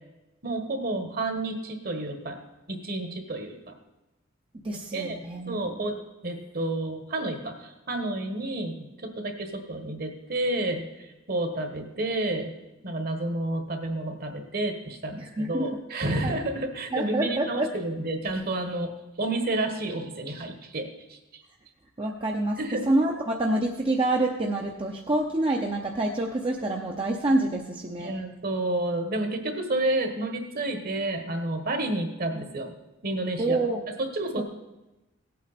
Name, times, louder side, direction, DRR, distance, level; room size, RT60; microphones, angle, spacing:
voice 1, 0.4-2.4 2.7-3.7 4.9-5.2 5.5-6.0 6.2-12.5 12.8-18.9 19.2-21.4 22.6-22.9 28.0-32.7 33.0-33.6 34.0-34.4, right 2 dB, 45° right, 6 dB, 1.4 m, -30 dB
voice 2, 4.6-5.8 15.2-15.8 16.2-16.4 16.9-17.7 22.0-22.6 22.9-28.1 33.4-33.8 34.4-34.5, right 2 dB, 25° right, 0 dB, 0.7 m, -27 dB
17.0 x 8.5 x 4.2 m, 1.0 s
head